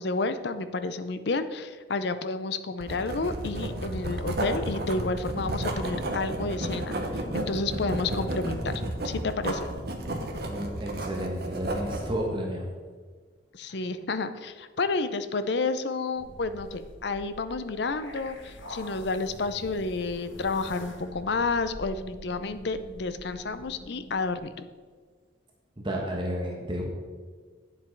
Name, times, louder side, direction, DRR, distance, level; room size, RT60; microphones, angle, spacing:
voice 1, 0.0-8.7 9.0-9.7 13.5-24.5, left 3 dB, 60° left, 11 dB, 0.5 m, -30 dB
Writing, 2.8-12.1, right 1 dB, 55° right, 1.0 m, -32 dB
voice 2, 10.4-12.7 25.8-26.8, equal, 25° right, -1 dB, 1.3 m, -32 dB
sound 1, 16.2-24.4, left 1 dB, 80° left, 1.2 m, -45 dB
9.1 x 7.4 x 4.6 m, 1.5 s
head